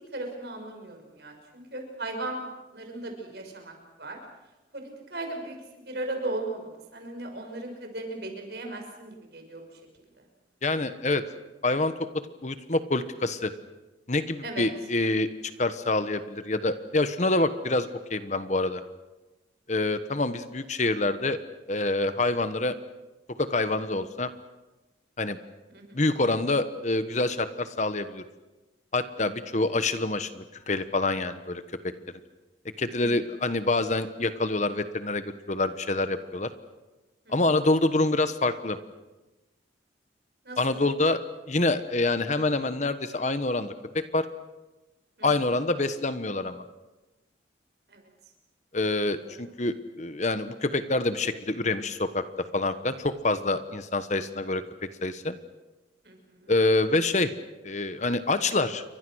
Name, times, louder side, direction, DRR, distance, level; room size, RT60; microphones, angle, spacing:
voice 1, 0.1-2.4 2.7-4.2 4.7-9.6 14.4-14.6 25.7-26.0 29.2-29.3 33.0-33.1 37.3-37.4 40.4-40.8 45.2-45.3 47.9-48.0 49.2-49.4 56.0-56.5, right 2 dB, 55° right, 4 dB, 6.0 m, -37 dB
voice 2, 10.6-11.2 11.6-11.9 12.4-13.5 14.1-15.3 15.6-18.8 19.7-21.4 21.7-22.8 23.4-24.3 25.2-25.4 25.9-28.2 28.9-31.6 32.8-36.5 37.3-38.8 40.6-41.2 41.5-44.3 45.2-46.6 48.7-52.2 52.5-54.6 55.0-55.4 56.5-57.3 57.6-58.8, left 2 dB, 40° left, 11 dB, 1.2 m, -26 dB
29.5 x 24.0 x 6.4 m, 1.1 s
head